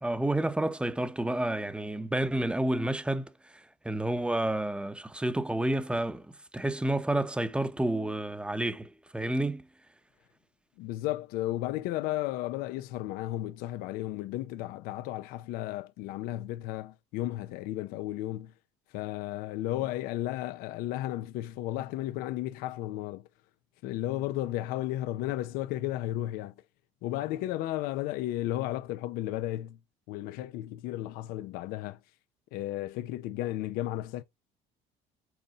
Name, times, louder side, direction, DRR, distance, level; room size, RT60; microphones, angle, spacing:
voice 1, 0.0-3.3 3.8-6.2 6.5-9.6, right 1 dB, 5° right, 0.9 m, -30 dB
voice 2, 10.8-18.5 18.9-23.2 23.8-26.5 27.0-29.8 30.1-32.0 32.5-34.2, left 15 dB, 80° left, 0.8 m, -34 dB
8.2 x 4.1 x 5.1 m
supercardioid pair, 95°, 15 cm